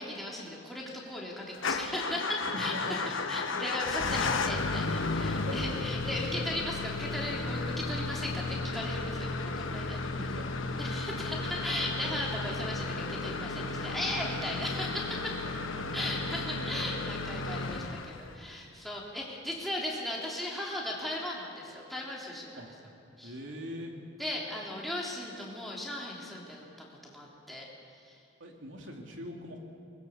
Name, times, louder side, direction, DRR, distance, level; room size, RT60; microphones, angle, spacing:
voice 1, 0.0-10.0 10.8-15.4 15.9-22.6 23.2-23.3 24.2-27.7 27.9-28.2, left 1 dB, ahead, -4 dB, 3.4 m, -37 dB
Motor vehicle (road) / Engine starting / Idling, 1.6-18.5, left 3 dB, 75° left, 1.1 m, -34 dB
voice 2, 2.4-3.0 5.4-5.6 10.2-10.5 15.6-16.1 16.5-16.7 22.6-22.7 23.2-24.0 28.4-29.6, equal, 70° right, 1 dB, 2.7 m, -42 dB
23.5 x 21.0 x 7.2 m, 2.7 s
head